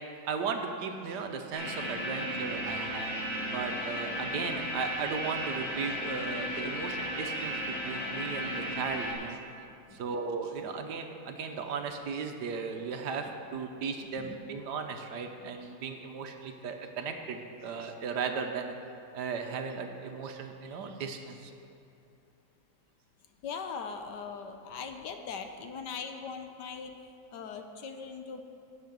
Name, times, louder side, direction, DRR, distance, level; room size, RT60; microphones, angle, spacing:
voice 1, 0.2-3.2 3.5-9.4 9.9-18.7 19.1-21.5, right 5 dB, 70° right, 5 dB, 1.3 m, -36 dB
sound 1, 1.5-9.1, equal, 35° left, 3.7 m, -35 dB
voice 2, 23.4-28.4, left 5 dB, 70° left, 6 dB, 1.3 m, -40 dB
10.5 x 6.6 x 8.0 m, 2.7 s
omnidirectional pair, 2.0 m